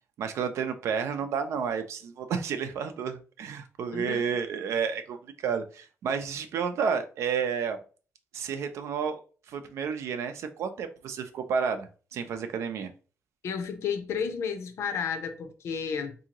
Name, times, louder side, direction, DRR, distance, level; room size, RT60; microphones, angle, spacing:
voice 1, 0.2-7.8 8.3-9.2 9.5-12.9, right 6 dB, 70° right, 0.5 m, -31 dB
voice 2, 3.9-4.3 13.4-16.1, left 6 dB, 65° left, 0.6 m, -32 dB
3.7 x 2.8 x 2.9 m
cardioid pair, 165°, 5 cm